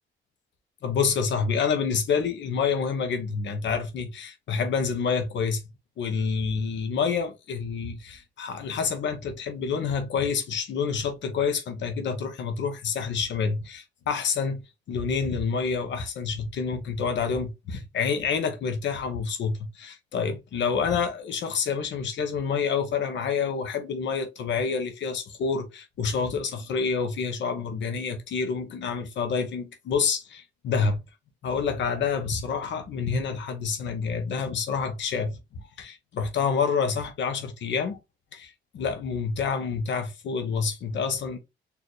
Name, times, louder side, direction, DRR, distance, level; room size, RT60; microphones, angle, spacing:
voice 1, 0.8-5.6 6.0-14.6 14.9-31.0 31.4-38.0 38.3-41.4, left 5 dB, 70° left, 0.9 m, -28 dB
4.3 x 2.7 x 3.1 m
cardioid pair, 90°, 20 cm